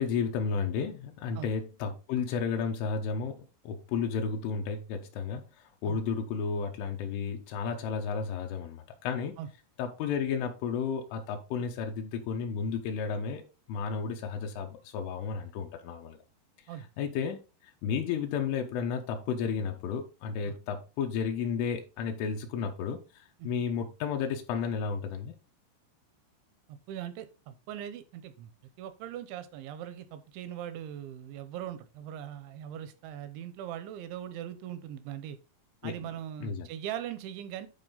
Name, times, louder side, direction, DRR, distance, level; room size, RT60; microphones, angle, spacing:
voice 1, 0.0-5.4 5.8-9.3 9.8-13.4 13.7-16.2 17.0-17.4 17.8-25.3 35.8-35.9 36.4-36.7, left 6 dB, 85° left, 3.4 m, -32 dB
voice 2, 26.7-28.5 28.8-35.4 35.8-37.7, right 10 dB, 80° right, 2.9 m, -40 dB
11.0 x 4.4 x 3.8 m
omnidirectional pair, 5.7 m